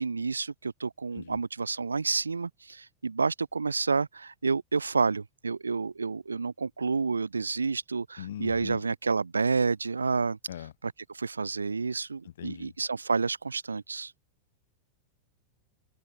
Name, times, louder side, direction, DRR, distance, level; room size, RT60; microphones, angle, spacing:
voice 1, 0.0-10.4 11.1-14.1, right 4 dB, 75° right, 1.2 m, -29 dB
voice 2, 8.2-8.8 10.5-10.7 12.2-12.8, left 11 dB, 60° left, 8.0 m, -40 dB
open air
figure-of-eight pair, 90°, 0 cm